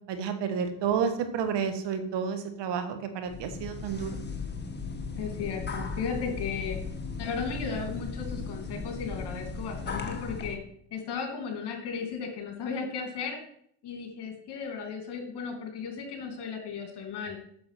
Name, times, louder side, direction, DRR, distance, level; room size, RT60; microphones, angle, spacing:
voice 1, 0.1-4.2, right 7 dB, 65° right, 8 dB, 1.6 m, -30 dB
sound 1, 3.3-10.6, left 4 dB, 20° left, 1.6 m, -36 dB
voice 2, 5.2-6.8 7.2-10.6 10.9-13.4 13.8-17.4, left 5 dB, 60° left, 4 dB, 2.8 m, -35 dB
7.8 x 6.7 x 5.8 m, 0.67 s
supercardioid pair, 80°, 45 cm